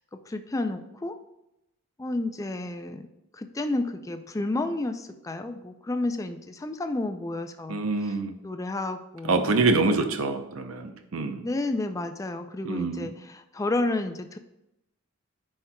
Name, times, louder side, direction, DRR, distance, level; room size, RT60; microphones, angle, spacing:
voice 1, 0.3-1.1 2.0-3.0 3.4-7.8 8.4-9.4 11.4-14.4, left 2 dB, 15° left, 7 dB, 0.3 m, -31 dB
voice 2, 7.7-8.3 9.2-11.4 12.6-13.1, right 3 dB, 75° right, 8 dB, 0.7 m, -25 dB
9.9 x 4.4 x 2.2 m, 0.89 s
head